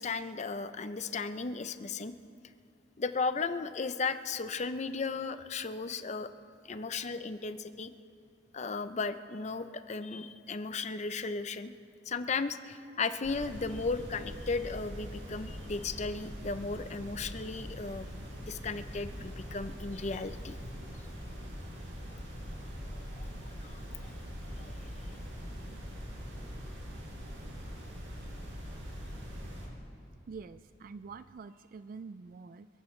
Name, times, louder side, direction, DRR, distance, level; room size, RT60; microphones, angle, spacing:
voice 1, 0.0-2.1 3.0-6.3 6.7-7.9 8.5-11.7 12.1-18.1 18.4-20.5 22.1-22.2 23.1-23.3 23.6-24.1 24.5-24.8, left 4 dB, 40° left, 11 dB, 0.6 m, -35 dB
sound 1, 13.2-29.7, equal, 80° right, 5.0 m, -43 dB
voice 2, 30.3-32.7, right 4 dB, 50° right, 13 dB, 0.3 m, -46 dB
28.0 x 15.0 x 3.2 m, 2.4 s
head